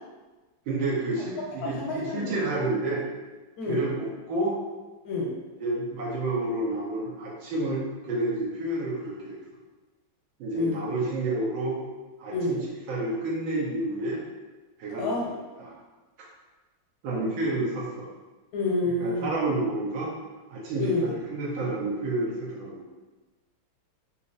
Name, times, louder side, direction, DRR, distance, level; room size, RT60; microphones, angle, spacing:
voice 1, 0.7-3.1 3.7-4.6 5.6-9.4 10.4-11.8 12.2-14.2 14.8-15.1 15.6-15.7 16.2-16.3 17.0-18.1 18.8-20.1 20.5-22.9, right 2 dB, 75° right, -5 dB, 1.5 m, -29 dB
voice 2, 1.8-2.3 3.6-3.8 5.1-5.3 10.5-10.8 12.3-12.6 15.0-15.2 18.5-19.3 20.8-21.1, left 2 dB, 85° left, -3 dB, 1.7 m, -28 dB
3.9 x 2.9 x 2.5 m, 1.2 s
omnidirectional pair, 2.2 m